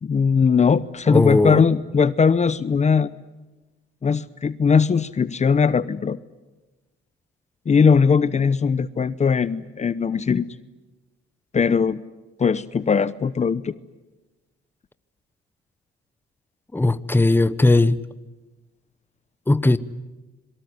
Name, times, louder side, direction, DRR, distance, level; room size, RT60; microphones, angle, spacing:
voice 1, 0.0-3.1 4.0-6.2 7.7-10.5 11.5-12.0 12.4-13.7, left 6 dB, 35° left, 16 dB, 0.9 m, -19 dB
voice 2, 1.1-1.7 16.7-18.0 19.5-19.8, left 2 dB, 10° left, 15 dB, 1.0 m, -17 dB
26.5 x 23.5 x 9.7 m, 1.1 s
cardioid pair, 90°, 20 cm